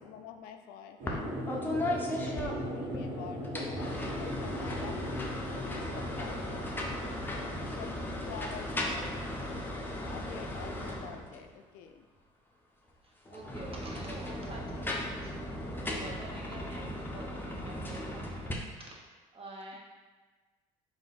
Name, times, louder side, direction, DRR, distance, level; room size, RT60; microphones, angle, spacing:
voice 1, 0.0-1.4 1.8-7.2 7.5-9.6 10.0-12.1 19.7-19.8, left 7 dB, 70° left, 6 dB, 0.4 m, -48 dB
sound 1, 1.0-10.7, equal, 55° right, 1.2 m, -40 dB
sound 2, 1.1-1.2 1.5-3.0 3.4-11.5 13.2-18.5, left 1 dB, 10° left, 0.7 m, -37 dB
voice 2, 13.0-14.6 15.2-15.3 15.6-19.8, right 2 dB, 35° right, -2 dB, 1.1 m, -48 dB
3.7 x 2.6 x 4.0 m, 1.3 s
hypercardioid pair, 65°, 16 cm